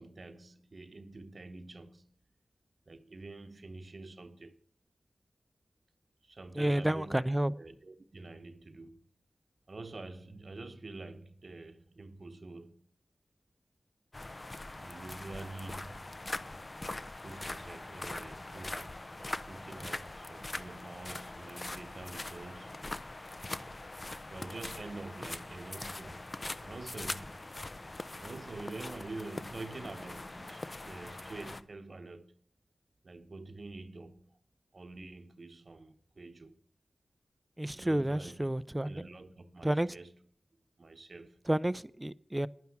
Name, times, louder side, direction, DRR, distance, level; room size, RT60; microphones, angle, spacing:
voice 1, 0.0-2.1 2.9-4.6 6.2-7.2 7.6-9.1 9.7-12.8 14.7-16.0 17.2-23.0 24.3-27.4 28.2-32.3 33.0-34.2 34.7-36.6 37.6-38.5 38.8-40.1 40.8-41.4, right 2 dB, 60° right, 0.8 m, -47 dB
voice 2, 6.6-7.5 37.6-39.0 39.6-39.9 41.5-42.5, right 1 dB, 15° right, 0.4 m, -30 dB
sound 1, 14.1-31.6, left 2 dB, 40° left, 0.7 m, -42 dB
10.5 x 9.5 x 5.9 m
cardioid pair, 50°, 0 cm